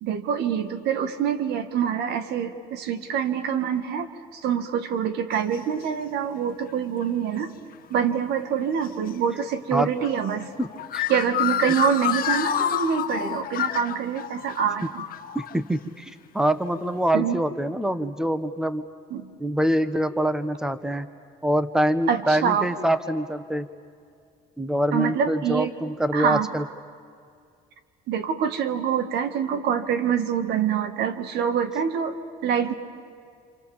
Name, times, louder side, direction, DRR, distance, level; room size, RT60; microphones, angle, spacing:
voice 1, 0.0-7.5 7.9-10.5 11.1-15.0 17.1-17.4 19.1-19.3 22.1-22.7 24.9-25.7 26.1-26.5 28.1-32.2 32.4-32.7, right 8 dB, 80° right, 10 dB, 1.9 m, -25 dB
sound 1, 5.3-5.6 7.0-7.1 7.9-8.1 8.8-8.9 9.8-15.5, left 10 dB, 60° left, 1.3 m, -28 dB
voice 2, 10.6-11.1 15.3-18.9 19.4-21.1 21.4-23.7 24.6-26.6, right 1 dB, 5° right, 12 dB, 1.2 m, -25 dB
28.5 x 27.5 x 7.3 m, 2.3 s
cardioid pair, 110°, 17 cm